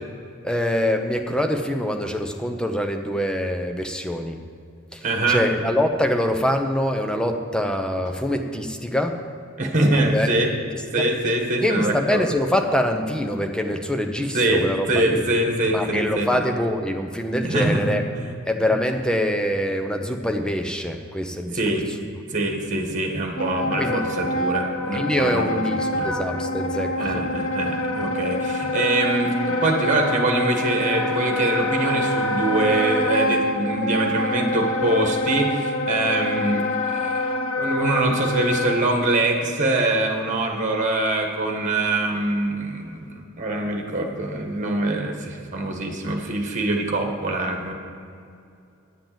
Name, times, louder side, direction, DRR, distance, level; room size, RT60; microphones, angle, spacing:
voice 1, 0.4-4.4 4.9-9.2 10.0-10.3 11.0-11.1 11.6-15.2 15.7-18.0 18.5-21.8 23.8-24.0 24.9-27.2, left 1 dB, 5° left, 4 dB, 0.7 m, -24 dB
voice 2, 5.0-5.4 9.6-10.5 10.9-12.3 14.3-16.3 17.4-17.8 18.2-18.3 21.5-21.8 22.3-25.6 25.9-26.1 27.0-37.2 37.6-47.7, right 2 dB, 35° right, 2 dB, 1.7 m, -23 dB
Wind instrument woodwind instrument, 23.3-38.8, left 1 dB, 85° left, 0.9 m, -26 dB
10.5 x 7.7 x 7.6 m, 2.5 s
head